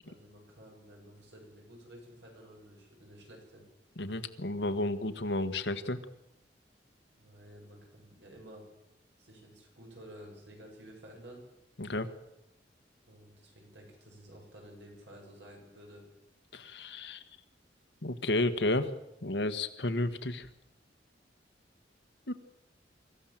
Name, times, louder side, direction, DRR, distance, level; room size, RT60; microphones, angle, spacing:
voice 1, 0.0-3.6 7.2-8.6 9.2-11.5 13.1-16.0, equal, 75° right, 0 dB, 7.9 m, -52 dB
voice 2, 4.0-6.0 11.8-12.1 16.5-17.2 18.0-18.9 19.2-20.5 22.3-22.4, left 2 dB, 70° left, 9 dB, 1.5 m, -32 dB
24.5 x 14.5 x 7.6 m, 0.90 s
head